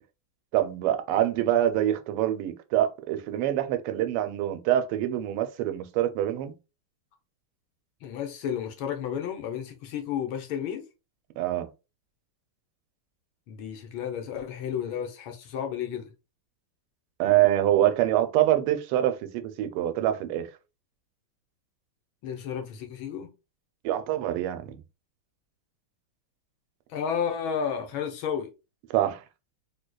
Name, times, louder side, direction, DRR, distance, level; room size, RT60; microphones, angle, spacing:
voice 1, 0.5-6.5 11.4-11.7 17.2-20.5 23.8-24.8 28.9-29.2, right 12 dB, 90° right, 1.5 m, -25 dB
voice 2, 8.0-10.8 13.5-16.1 22.2-23.3 26.9-28.5, left 8 dB, 75° left, 1.4 m, -32 dB
3.9 x 2.7 x 2.2 m
omnidirectional pair, 2.4 m